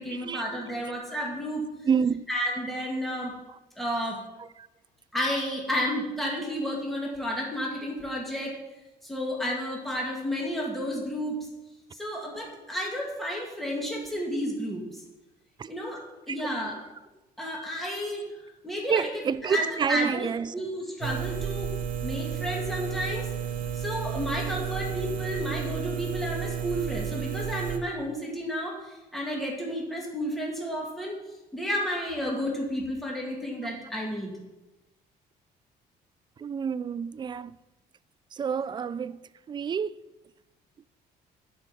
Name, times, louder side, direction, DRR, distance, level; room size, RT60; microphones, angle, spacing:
voice 1, 0.0-1.9 2.3-3.3 3.8-4.2 5.1-8.6 9.0-11.4 11.9-15.0 15.7-16.8 17.4-21.7 22.0-23.3 23.7-31.2 31.5-34.3, equal, ahead, 2.1 m, -32 dB
voice 2, 1.9-2.3 15.6-15.7 16.3-16.4 18.9-20.5 36.4-37.6 38.3-39.2 39.5-40.0, right 6 dB, 25° right, 0.3 m, -28 dB
sound 1, 21.0-27.8, right 8 dB, 55° right, 1.0 m, -32 dB
10.5 x 5.2 x 5.8 m
cardioid pair, 110°, 17 cm